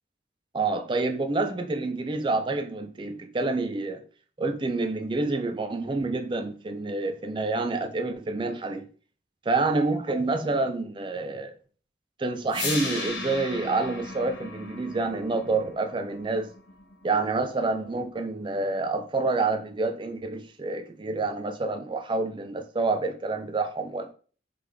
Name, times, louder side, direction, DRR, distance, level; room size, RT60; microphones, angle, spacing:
voice 1, 0.5-4.0 4.4-8.8 9.5-11.5 12.2-16.5 17.0-24.1, right 3 dB, 25° right, 0.4 m, -28 dB
sound 1, 12.5-18.5, left 3 dB, 70° left, 1.4 m, -37 dB
3.5 x 3.4 x 3.3 m
head